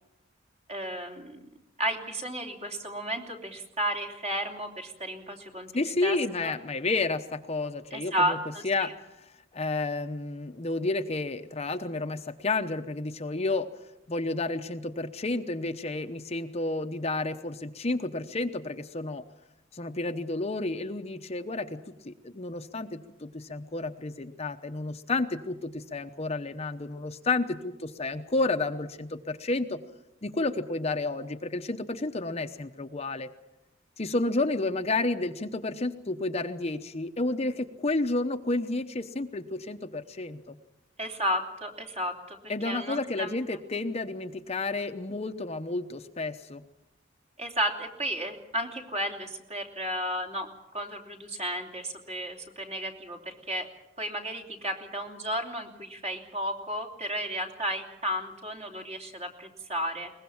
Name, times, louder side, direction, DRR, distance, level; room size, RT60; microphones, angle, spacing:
voice 1, 0.7-1.4 1.8-5.7 6.0-6.2 6.4-6.5 7.9-8.9 41.0-43.4 47.4-53.7 54.0-60.1, equal, 40° right, 3 dB, 3.1 m, -33 dB
voice 2, 5.7-8.4 8.6-8.9 9.5-13.7 14.1-19.2 19.7-21.8 22.0-29.8 30.2-33.3 34.0-40.6 42.5-46.6, left 2 dB, 35° left, 8 dB, 0.9 m, -31 dB
22.0 x 20.0 x 7.2 m, 0.91 s
head